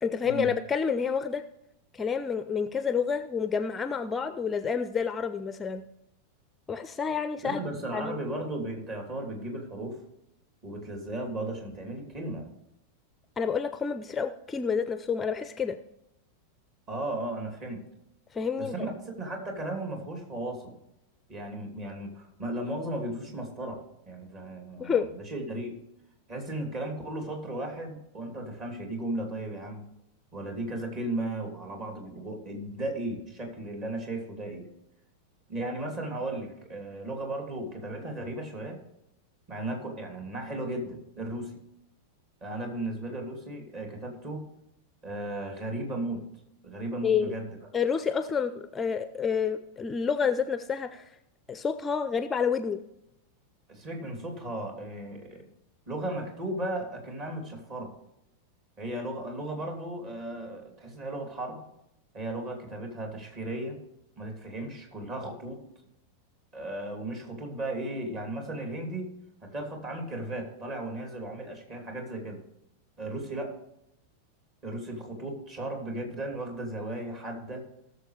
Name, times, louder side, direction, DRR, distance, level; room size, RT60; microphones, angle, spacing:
voice 1, 0.0-1.4 1.9-5.8 6.7-7.6 7.9-8.2 13.4-15.8 18.3-18.9 24.8-25.1 47.0-47.4 47.7-51.1 51.5-52.8, left 6 dB, 15° left, 12 dB, 0.5 m, -29 dB
voice 2, 7.4-10.0 10.6-12.5 16.9-17.8 18.6-18.9 19.2-20.8 21.3-25.7 26.3-29.8 30.3-34.7 35.5-38.8 39.5-41.6 42.4-44.4 45.0-46.2 46.6-47.5 53.7-55.5 55.9-57.9 58.8-61.6 62.1-63.8 64.1-65.7 66.5-69.1 69.4-72.4 73.0-73.5 74.6-77.7, right 1 dB, 35° right, 2 dB, 3.0 m, -35 dB
18.0 x 7.0 x 3.3 m, 0.83 s
figure-of-eight pair, 90°, 0 cm